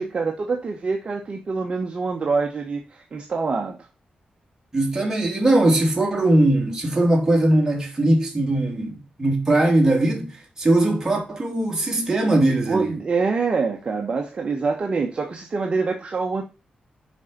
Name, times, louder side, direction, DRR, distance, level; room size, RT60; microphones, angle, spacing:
voice 1, 0.0-3.8 12.7-16.4, right 4 dB, 40° right, 1.1 m, -25 dB
voice 2, 4.7-12.9, right 1 dB, 20° right, 2.7 m, -20 dB
6.5 x 5.4 x 6.5 m
wide cardioid pair, 170°, 3 cm